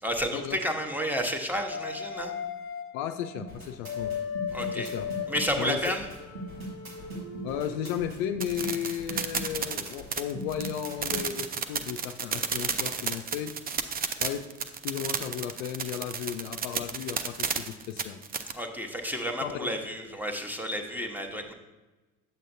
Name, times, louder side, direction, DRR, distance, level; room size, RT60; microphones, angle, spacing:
voice 1, 0.0-2.3 4.5-4.9 5.3-6.1 18.5-21.5, equal, 5° right, 3 dB, 1.0 m, -31 dB
sound 1, 1.7-8.0, left 7 dB, 30° left, 0.9 m, -37 dB
voice 2, 2.9-4.2 4.7-5.1 5.6-6.0 7.4-13.5 14.2-14.5 14.8-18.2 19.4-19.7, left 9 dB, 60° left, 7 dB, 0.5 m, -34 dB
sound 2, 3.4-11.2, right 1 dB, 85° right, 1.6 m, -40 dB
sound 3, 8.4-18.5, right 6 dB, 20° right, 0.5 m, -32 dB
8.9 x 7.6 x 2.6 m, 1.2 s
figure-of-eight pair, 55°, 41 cm